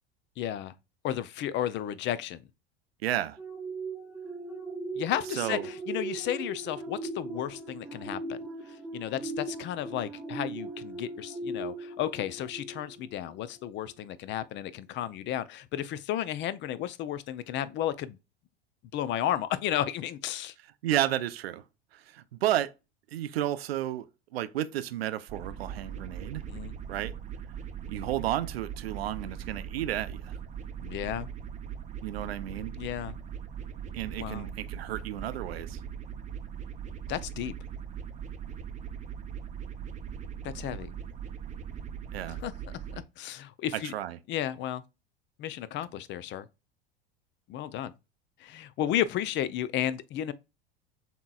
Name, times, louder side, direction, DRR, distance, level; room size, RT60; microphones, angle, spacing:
voice 1, 0.4-0.7 1.0-2.4 5.0-8.4 8.9-18.2 18.9-20.5 26.5-26.7 30.8-31.3 32.8-33.2 34.1-34.5 37.1-37.5 40.4-40.9 42.4-42.5 42.9-43.9 44.3-44.8 45.4-46.5 47.5-47.9 48.4-50.3, left 11 dB, 40° left, 0.5 m, -33 dB
voice 2, 3.0-3.4 5.4-5.7 20.8-21.6 21.9-22.7 23.1-24.1 24.3-26.4 26.9-27.1 27.9-30.4 32.0-32.7 33.9-35.8 42.1-42.4 43.7-44.2, right 13 dB, 80° right, 0.5 m, -32 dB
sound 1, 3.4-13.2 13.7-13.9, right 2 dB, 10° right, 1.1 m, -39 dB
sound 2, 25.3-43.0, right 8 dB, 25° right, 0.6 m, -40 dB
7.1 x 2.9 x 2.3 m
hypercardioid pair, 85°, 30 cm